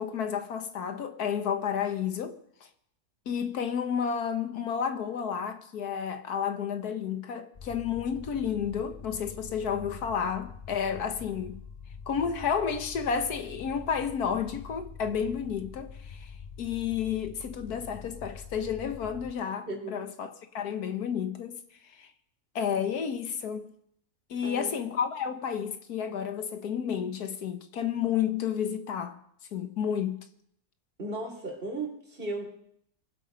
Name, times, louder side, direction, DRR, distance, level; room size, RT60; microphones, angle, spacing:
voice 1, 0.0-2.7 3.3-11.6 12.1-22.1 22.6-23.7 24.3-29.2 29.5-30.2, left 7 dB, 90° left, 1.7 m, -31 dB
sound 1, 7.5-19.3, left 6 dB, 60° left, 0.4 m, -45 dB
voice 2, 24.4-24.7 31.0-32.6, right 2 dB, 35° right, 3.7 m, -36 dB
24.0 x 8.0 x 5.2 m
omnidirectional pair, 1.6 m